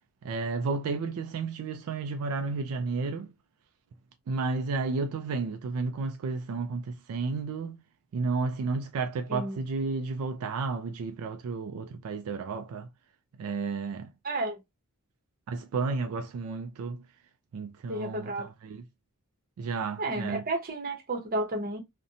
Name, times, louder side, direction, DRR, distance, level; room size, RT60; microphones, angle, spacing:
voice 1, 0.2-3.3 4.3-7.8 8.1-12.9 13.4-14.1 15.5-17.0 17.5-18.8 19.6-20.4, right 4 dB, 75° right, 0.3 m, -32 dB
voice 2, 14.2-14.6 17.9-18.5 20.0-21.8, right 2 dB, 40° right, 0.8 m, -32 dB
2.6 x 2.1 x 2.6 m
head